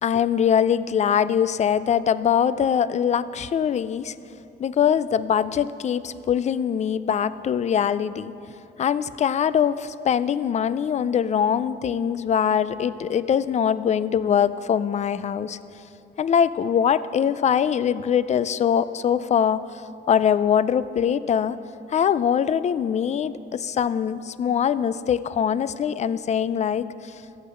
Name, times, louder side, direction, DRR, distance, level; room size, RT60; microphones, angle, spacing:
voice 1, 0.0-4.1 4.6-8.3 8.8-15.6 16.2-21.6 21.9-27.2, left 8 dB, 35° left, 16 dB, 0.4 m, -22 dB
13.5 x 8.3 x 5.5 m, 2.9 s
cardioid pair, 90°, 20 cm